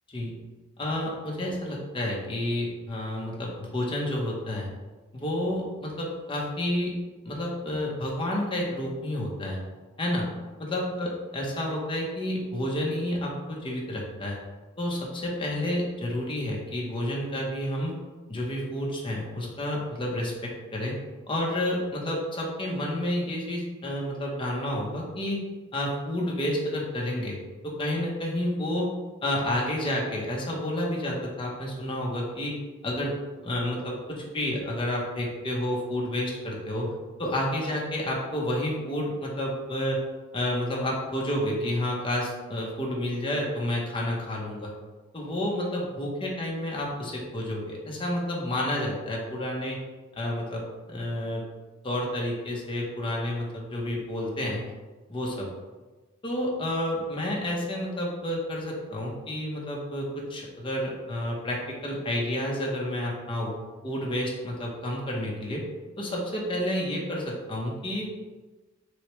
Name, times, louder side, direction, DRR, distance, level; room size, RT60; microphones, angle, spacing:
voice 1, 0.8-4.7 5.1-6.9 7.2-9.6 10.0-10.3 10.6-14.4 14.8-18.0 18.3-21.0 21.3-25.4 25.7-27.4 27.6-28.9 29.2-32.5 32.8-33.2 33.4-36.9 37.2-40.0 40.3-44.7 45.1-49.8 50.1-50.6 50.9-51.4 51.8-54.6 55.1-55.5 56.2-63.5 63.8-65.6 66.0-68.1, left 1 dB, 25° left, -3 dB, 0.8 m, -30 dB
6.2 x 2.2 x 3.1 m, 1.2 s
head